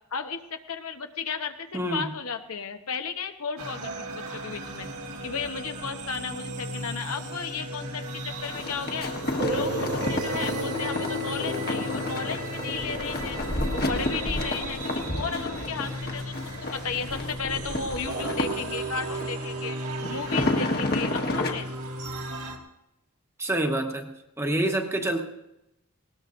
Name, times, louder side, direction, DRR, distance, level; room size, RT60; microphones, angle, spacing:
voice 1, 0.1-4.9 5.2-9.1 9.5-13.4 13.9-19.8 20.1-21.7, left 5 dB, 75° left, 6 dB, 1.0 m, -34 dB
voice 2, 1.7-2.1 23.4-24.1 24.4-25.2, right 1 dB, 10° right, 3 dB, 1.2 m, -26 dB
sound 1, 3.6-22.6, right 2 dB, 80° right, 2.0 m, -36 dB
sound 2, 8.4-19.3 20.0-21.5, left 2 dB, 45° left, 1.5 m, -31 dB
sound 3, 9.4-18.1, equal, 55° right, 1.5 m, -36 dB
20.0 x 18.0 x 2.6 m, 0.89 s
head